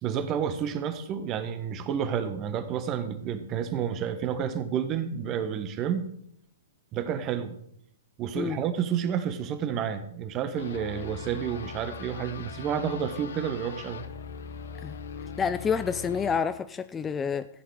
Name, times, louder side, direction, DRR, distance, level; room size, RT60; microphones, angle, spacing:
voice 1, 0.0-6.1 6.9-7.6 8.2-14.0, right 8 dB, 30° right, 10 dB, 1.3 m, -30 dB
sound 1, 10.6-16.4, left 6 dB, 70° left, 1.2 m, -40 dB
voice 2, 15.4-17.5, left 6 dB, 15° left, 13 dB, 0.4 m, -28 dB
14.5 x 8.3 x 4.9 m, 0.70 s
hypercardioid pair, 115°, 0 cm